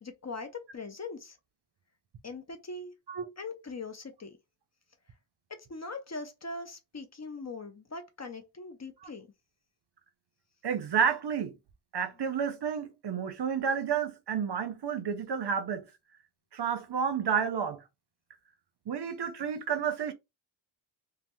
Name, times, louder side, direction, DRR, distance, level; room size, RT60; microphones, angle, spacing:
voice 1, 0.0-1.4 2.2-2.9 3.4-4.4 5.5-9.3, left 3 dB, 35° left, 0.6 m, -41 dB
voice 2, 10.6-11.5 11.9-15.9 16.5-17.8 18.9-20.1, right 7 dB, 55° right, 0.6 m, -30 dB
3.2 x 2.1 x 2.9 m
wide cardioid pair, 75°, 48 cm